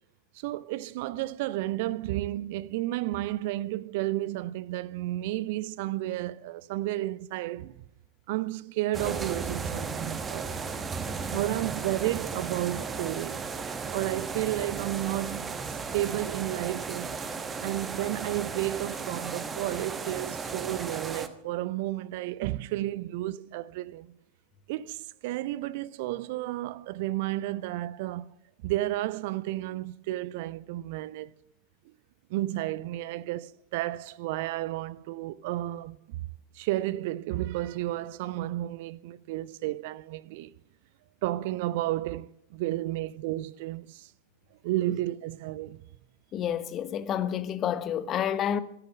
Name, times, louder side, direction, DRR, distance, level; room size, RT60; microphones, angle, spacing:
voice 1, 0.3-7.7 8.3-10.6 11.3-13.5 13.9-15.6 15.9-17.1 17.6-24.1 24.7-28.3 28.6-31.3 32.3-36.3 36.5-40.5 41.2-44.1 44.6-45.8, right 16 dB, 50° right, 0.4 m, -32 dB
sound 1, 8.9-21.3, right 5 dB, 20° right, 1.1 m, -35 dB
voice 2, 46.3-48.6, left 9 dB, 30° left, 0.9 m, -29 dB
13.5 x 11.0 x 6.2 m
figure-of-eight pair, 90°, 0 cm